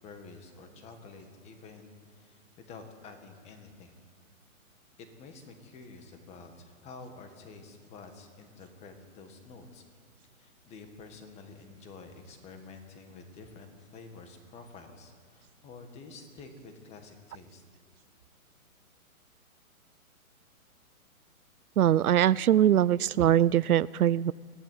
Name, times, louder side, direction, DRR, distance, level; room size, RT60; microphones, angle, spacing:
voice 1, 0.0-3.9 5.0-9.8 10.3-17.6, left 4 dB, 15° left, 6 dB, 1.8 m, -49 dB
voice 2, 21.8-24.3, right 11 dB, 90° right, 20 dB, 0.6 m, -22 dB
23.0 x 15.5 x 9.3 m, 2.3 s
hypercardioid pair, 155°, 42 cm